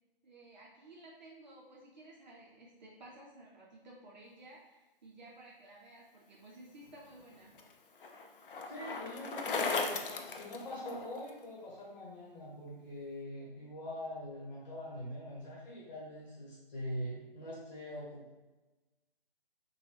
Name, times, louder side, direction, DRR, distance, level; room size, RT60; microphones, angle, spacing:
voice 1, 0.2-7.5, right 2 dB, 50° right, -3 dB, 0.6 m, -55 dB
Bicycle, 6.9-11.3, left 4 dB, 65° left, 0.5 m, -38 dB
voice 2, 8.7-18.3, left 1 dB, 50° left, -6 dB, 1.1 m, -43 dB
2.8 x 2.3 x 3.2 m, 1.1 s
figure-of-eight pair, 150°, 29 cm